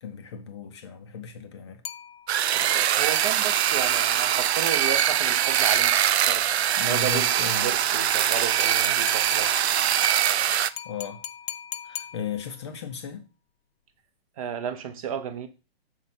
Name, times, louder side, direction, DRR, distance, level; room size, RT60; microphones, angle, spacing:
voice 1, 0.0-1.8 6.8-7.7 10.8-11.2 11.8-13.3, left 6 dB, 25° left, 0.5 m, -35 dB
sound 1, 1.8-2.7 5.0-5.7 8.1-12.7, left 10 dB, 75° left, 0.6 m, -40 dB
sound 2, 2.3-10.7, right 10 dB, 85° right, 0.5 m, -23 dB
voice 2, 2.6-6.4 6.8-7.3 7.6-9.6 14.4-15.5, right 8 dB, 35° right, 0.7 m, -33 dB
6.5 x 4.3 x 4.1 m
hypercardioid pair, 160°, 31 cm